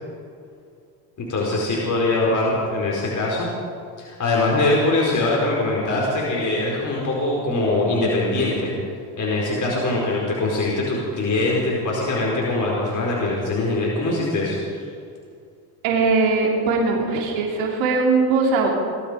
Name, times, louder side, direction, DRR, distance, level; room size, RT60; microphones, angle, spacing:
voice 1, 1.2-3.5 4.0-8.8 9.2-14.8, left 2 dB, 40° left, -3 dB, 4.6 m, -22 dB
voice 2, 15.8-18.7, right 4 dB, 75° right, -1 dB, 3.3 m, -20 dB
21.5 x 13.0 x 5.1 m, 2.4 s
supercardioid pair, 85°, 46 cm